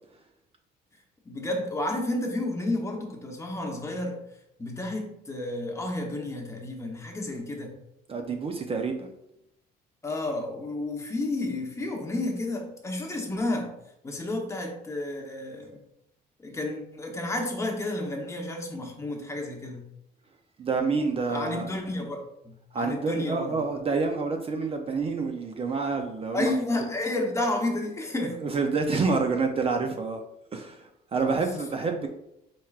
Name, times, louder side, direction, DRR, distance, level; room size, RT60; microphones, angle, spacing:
voice 1, 1.2-4.2 4.6-7.7 10.0-13.7 14.0-15.8 16.4-19.8 21.2-23.6 26.3-28.4, left 2 dB, 15° left, 1 dB, 0.9 m, -31 dB
voice 2, 8.1-9.1 20.6-21.7 22.7-26.5 28.4-30.2 30.5-32.1, right 4 dB, 35° right, 4 dB, 0.5 m, -28 dB
4.5 x 4.4 x 2.4 m, 0.80 s
cardioid pair, 110°, 17 cm